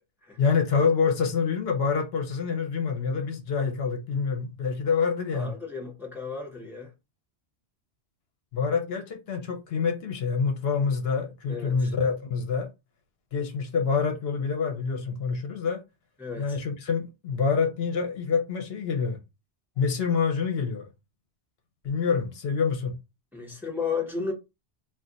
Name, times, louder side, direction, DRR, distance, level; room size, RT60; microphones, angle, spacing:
voice 1, 0.4-5.5 8.5-12.7 13.3-15.8 16.4-19.2 19.8-20.9 21.8-22.9, left 5 dB, 70° left, 0.9 m, -26 dB
voice 2, 5.3-6.9 11.5-11.9 16.2-16.6 23.3-24.3, left 5 dB, ahead, 0.8 m, -33 dB
2.4 x 2.3 x 3.8 m
omnidirectional pair, 1.1 m